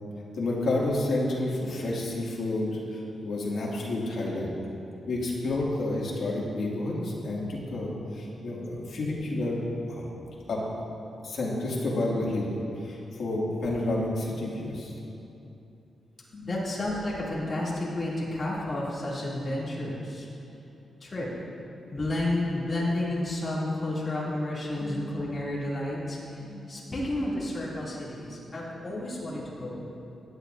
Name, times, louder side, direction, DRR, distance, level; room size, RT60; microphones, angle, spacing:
voice 1, 0.3-4.5 5.1-10.1 10.5-10.6 11.2-14.9 16.4-16.5 24.8-25.1 25.5-25.6 26.5-26.6, left 2 dB, 60° left, -4 dB, 2.2 m, -30 dB
voice 2, 16.5-20.3 21.0-21.3 21.9-26.4 26.7-29.8, left 1 dB, 25° left, -7 dB, 2.5 m, -31 dB
17.0 x 9.8 x 2.6 m, 2.8 s
wide cardioid pair, 160°, 0 cm